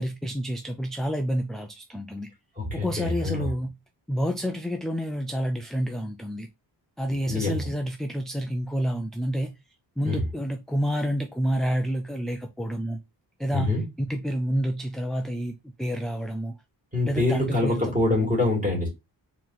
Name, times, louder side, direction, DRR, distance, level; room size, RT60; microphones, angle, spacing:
voice 1, 0.0-2.3 2.7-3.7 4.1-6.5 7.0-9.5 10.0-13.0 13.4-16.5 17.1-18.3, equal, ahead, 0.3 m, -29 dB
voice 2, 2.6-3.5 7.3-7.7 10.1-10.3 13.5-13.8 16.9-18.9, left 2 dB, 20° right, 2.5 m, -25 dB
4.3 x 3.1 x 3.9 m
wide cardioid pair, 140°, 44 cm